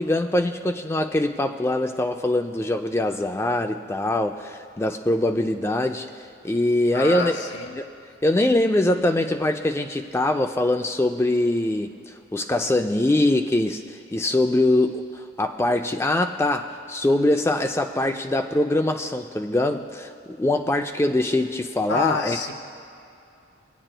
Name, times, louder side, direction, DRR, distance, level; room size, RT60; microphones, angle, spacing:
voice 1, 0.0-6.1 6.4-7.4 7.7-7.9 8.2-13.8 14.1-22.4, left 1 dB, 10° left, 5 dB, 0.3 m, -23 dB
voice 2, 6.9-7.8 21.9-22.5, left 4 dB, 55° left, 3 dB, 0.7 m, -27 dB
20.5 x 8.9 x 2.2 m, 2.7 s
head